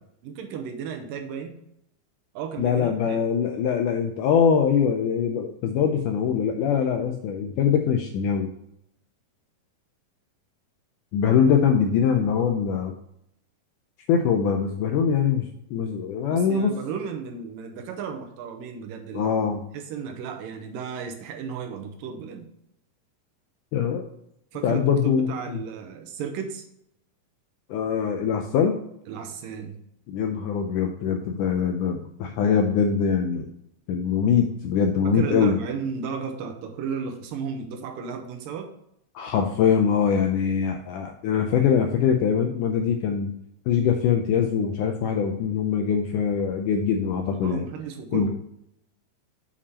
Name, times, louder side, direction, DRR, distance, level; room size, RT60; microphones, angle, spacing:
voice 1, 0.2-1.6 2.3-3.2 16.3-19.3 19.7-22.5 24.5-26.6 29.1-29.8 35.0-38.7 47.4-48.3, right 6 dB, 75° right, 4 dB, 2.4 m, -34 dB
voice 2, 2.6-8.5 11.1-12.9 14.1-16.7 19.1-19.6 23.7-24.0 24.6-25.6 27.7-28.8 30.1-33.5 33.9-35.6 39.2-43.3 43.7-47.7 48.1-48.3, left 7 dB, 80° left, 4 dB, 1.8 m, -23 dB
7.2 x 5.0 x 4.1 m, 0.77 s
omnidirectional pair, 4.2 m